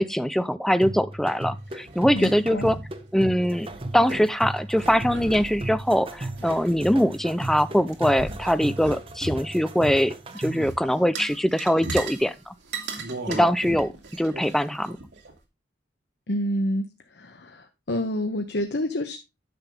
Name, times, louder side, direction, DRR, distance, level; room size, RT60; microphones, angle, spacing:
voice 1, 0.0-2.8 3.1-12.5 13.3-15.0, equal, ahead, 0.4 m, -23 dB
sound 1, 0.8-10.7, right 1 dB, 30° right, 0.9 m, -36 dB
sound 2, 1.7-2.9 3.3-3.4 3.6-4.3 4.8-7.3 7.8-10.0 10.3-10.8 11.1-12.3 12.7-15.3, right 3 dB, 75° right, 2.3 m, -36 dB
voice 2, 2.1-2.7 16.3-16.9 17.2-19.2, left 1 dB, 65° left, 1.0 m, -28 dB
10.5 x 3.5 x 7.1 m
head